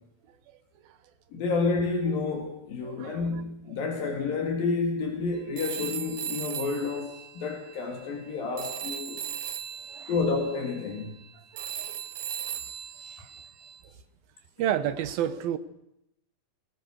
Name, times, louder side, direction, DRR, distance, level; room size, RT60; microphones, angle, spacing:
voice 1, 1.3-9.2 10.1-11.1, left 4 dB, 75° left, 4 dB, 4.4 m, -29 dB
voice 2, 2.8-3.4 3.7-4.0 6.5-6.6 9.1-9.2 9.9-10.1 11.5-12.0 13.0-13.3 13.8-13.9 14.6-15.6, right 10 dB, 85° right, 13 dB, 3.1 m, -32 dB
Telephone, 5.6-8.3 8.6-13.8, right 9 dB, 65° right, 1.7 m, -38 dB
25.0 x 19.5 x 6.5 m, 0.82 s
omnidirectional pair, 4.1 m